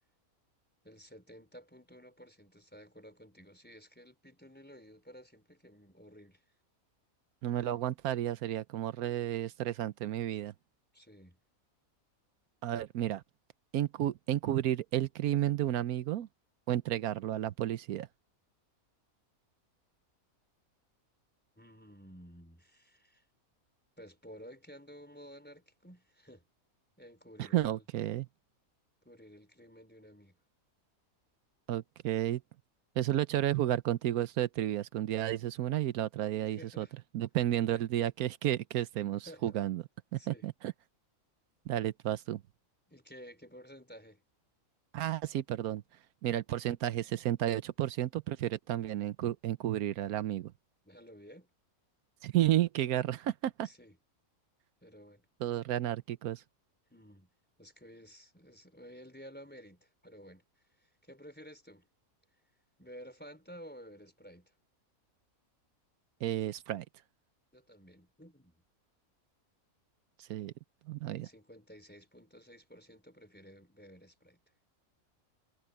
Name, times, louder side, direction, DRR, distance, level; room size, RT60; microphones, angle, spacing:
voice 1, 0.8-6.4 10.9-11.4 21.6-23.2 24.0-26.4 27.0-27.8 29.0-30.4 36.5-37.0 39.2-39.7 40.1-40.5 42.9-44.2 50.8-51.5 53.6-54.0 54.8-55.2 56.9-57.3 57.6-60.4 60.8-61.9 62.8-64.5 67.5-68.6 71.1-74.4, equal, 5° left, 4.6 m, -53 dB
voice 2, 7.4-10.5 12.6-13.2 13.7-16.3 16.7-18.1 27.4-28.3 31.7-32.4 33.0-36.9 37.1-39.8 40.1-40.7 41.7-42.4 44.9-45.8 46.2-50.5 52.2-53.7 55.4-56.4 66.2-66.8 70.2-70.5 70.9-71.3, right 12 dB, 85° right, 1.2 m, -32 dB
omnidirectional pair, 1.5 m